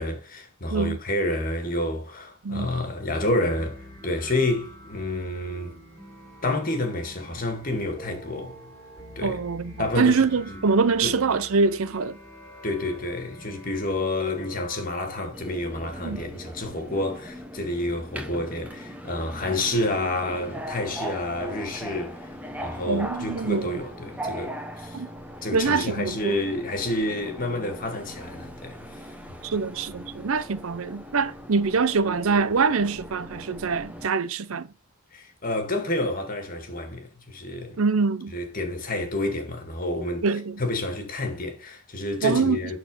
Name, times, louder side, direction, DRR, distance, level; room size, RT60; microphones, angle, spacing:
voice 1, 0.0-5.8 6.4-8.6 9.2-9.4 9.8-10.6 11.0-11.2 12.6-25.0 25.4-29.0 29.4-29.5 35.1-37.8 38.3-40.3 40.6-42.8, left 1 dB, 40° left, 2.0 m, -29 dB
sound 1, 3.5-14.8, equal, 10° left, 3.6 m, -45 dB
voice 2, 9.2-12.2 16.0-16.2 22.9-23.7 24.9-25.1 25.5-26.4 29.4-34.7 37.8-38.3 40.2-40.6 42.2-42.8, right 4 dB, 70° right, 0.6 m, -24 dB
Subway metro underground, 15.3-34.1, equal, 5° right, 1.0 m, -39 dB
11.0 x 4.3 x 5.4 m
head